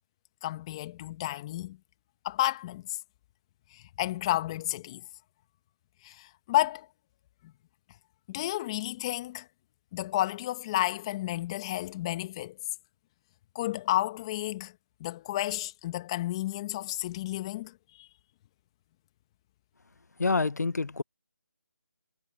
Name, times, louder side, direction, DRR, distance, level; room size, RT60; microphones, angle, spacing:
voice 1, 0.4-1.8 2.2-3.0 3.7-5.0 6.0-6.9 7.4-7.5 8.3-9.5 9.9-12.5 13.5-14.7 15.0-18.1, left 15 dB, 20° left, 1.5 m, -31 dB
voice 2, 20.2-21.0, left 3 dB, 75° left, 1.0 m, -27 dB
figure-of-eight pair, 160°, 9 cm